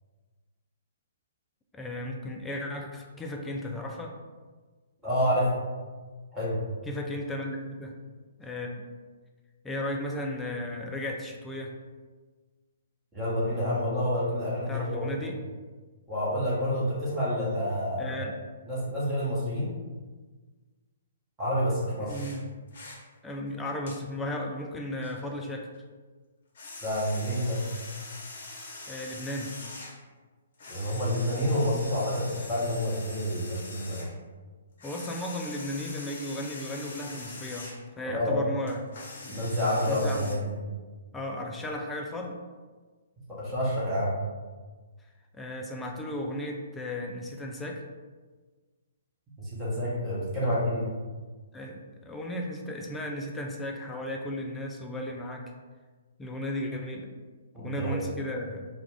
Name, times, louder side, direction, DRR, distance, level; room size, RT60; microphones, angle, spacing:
voice 1, 1.7-4.1 6.9-7.9 8.4-8.8 9.6-11.7 14.7-15.4 18.0-18.4 22.0-22.4 23.2-25.7 28.9-29.5 34.8-38.8 39.2-39.5 39.9-40.3 41.1-42.4 45.3-47.8 51.5-55.5 56.2-57.1 57.6-58.7, left 1 dB, 10° left, 0 dB, 0.3 m, -35 dB
voice 2, 5.0-5.5 6.3-6.6 13.1-15.2 16.1-18.3 18.7-19.7 21.4-22.2 26.8-27.6 30.7-34.0 38.0-38.4 39.3-40.5 43.3-44.1 49.4-50.9 57.5-58.0, equal, 15° right, -8 dB, 1.0 m, -28 dB
sound 1, 22.1-22.4 22.7-23.0 23.9-24.0 25.0-25.2 26.5-30.0 30.6-34.1 34.8-37.8 38.7-40.3, left 3 dB, 55° left, 0.6 m, -43 dB
2.3 x 2.2 x 3.3 m, 1.4 s
figure-of-eight pair, 125°, 0 cm